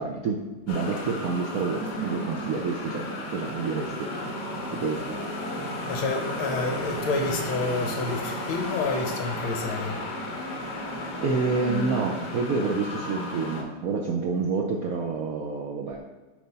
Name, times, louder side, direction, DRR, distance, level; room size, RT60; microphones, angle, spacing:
voice 1, 0.0-5.2 11.2-16.0, right 4 dB, 85° right, 1 dB, 0.7 m, -28 dB
sound 1, 0.7-13.6, equal, 55° left, 1.8 m, -33 dB
voice 2, 5.9-10.0, left 3 dB, 75° left, 3 dB, 1.6 m, -29 dB
9.5 x 3.3 x 5.2 m, 1.2 s
omnidirectional pair, 2.4 m